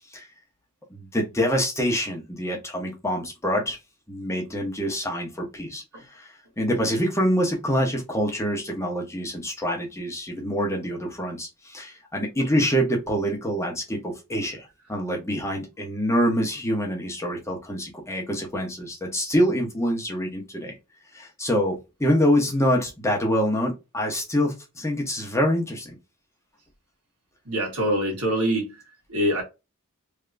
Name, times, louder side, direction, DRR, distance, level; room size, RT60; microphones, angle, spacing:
voice 1, 0.9-3.8 4.1-5.8 6.1-6.3 6.6-20.7 21.1-26.0, equal, 15° left, 0.9 m, -25 dB
voice 2, 27.5-28.7 29.1-29.4, equal, 75° right, 1.7 m, -24 dB
3.3 x 2.8 x 2.5 m
head